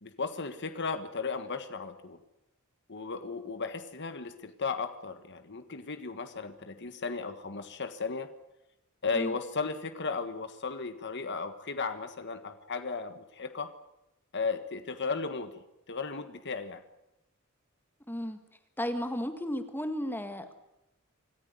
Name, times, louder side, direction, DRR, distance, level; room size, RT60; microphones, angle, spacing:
voice 1, 0.0-2.2 2.9-8.3 9.0-13.7 14.3-15.5 15.9-16.8, left 4 dB, 55° left, 8 dB, 1.5 m, -35 dB
voice 2, 18.1-18.4 18.8-20.6, equal, 10° left, 8 dB, 1.7 m, -34 dB
26.5 x 14.5 x 9.5 m, 0.91 s
head